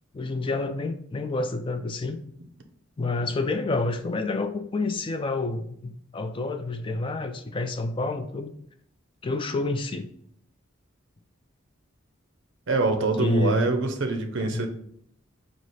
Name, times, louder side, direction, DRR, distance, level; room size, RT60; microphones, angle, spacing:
voice 1, 0.1-2.2 3.0-8.5 9.2-10.1 13.2-13.7 14.4-14.7, left 2 dB, 25° left, 0.3 m, -28 dB
voice 2, 12.7-14.7, right 3 dB, 65° right, 0.6 m, -25 dB
4.8 x 2.0 x 4.0 m
head